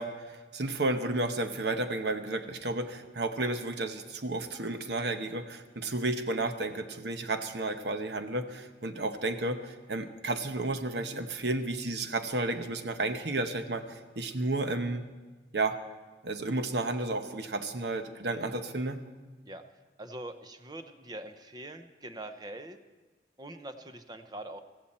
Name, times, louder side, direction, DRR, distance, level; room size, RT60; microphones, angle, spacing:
voice 1, 0.0-15.0 15.5-15.8 16.2-19.0, right 2 dB, 70° right, 8 dB, 1.0 m, -32 dB
voice 2, 20.0-22.8 23.4-24.6, right 1 dB, 25° right, 8 dB, 0.7 m, -43 dB
16.0 x 14.5 x 4.3 m, 1.3 s
head